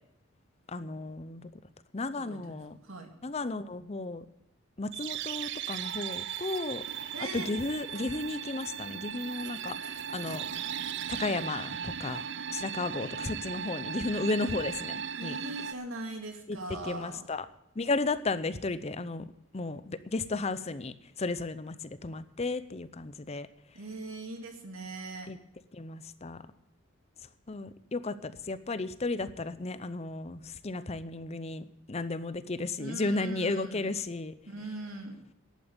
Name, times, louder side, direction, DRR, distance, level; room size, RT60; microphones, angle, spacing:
voice 1, 0.7-1.5 1.9-2.8 3.2-4.2 4.8-6.8 7.3-10.4 11.1-12.2 12.5-15.4 16.5-16.6 16.8-17.5 17.8-19.2 19.5-21.7 22.0-23.5 25.3-25.4 25.7-26.4 27.5-34.3, left 3 dB, 30° left, 13 dB, 0.6 m, -34 dB
voice 2, 2.3-3.1 7.1-7.5 14.1-14.2 15.2-17.3 23.7-25.3 32.8-33.9 34.5-35.2, right 2 dB, 90° right, 4 dB, 2.5 m, -40 dB
sound 1, 4.9-15.7, right 8 dB, 60° right, 0.5 m, -37 dB
11.5 x 8.7 x 8.8 m, 0.78 s
head